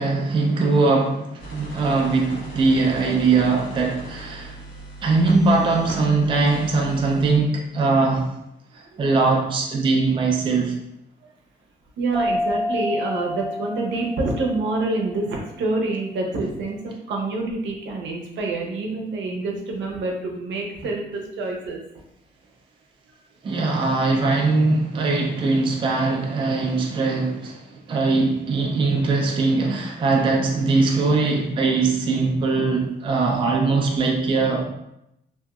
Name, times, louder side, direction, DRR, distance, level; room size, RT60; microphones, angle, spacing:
voice 1, 0.0-4.6 5.0-8.3 8.7-10.7 23.4-34.7, right 3 dB, 25° right, 0 dB, 0.4 m, -21 dB
sound 1, 1.4-7.3, right 1 dB, 80° left, 0.9 m, -38 dB
voice 2, 12.0-21.8 23.5-23.6, right 2 dB, 80° right, 0 dB, 0.6 m, -27 dB
sound 2, 12.1-15.4, left 1 dB, 5° left, 0.7 m, -29 dB
2.9 x 2.6 x 2.3 m, 0.83 s
wide cardioid pair, 160°, 19 cm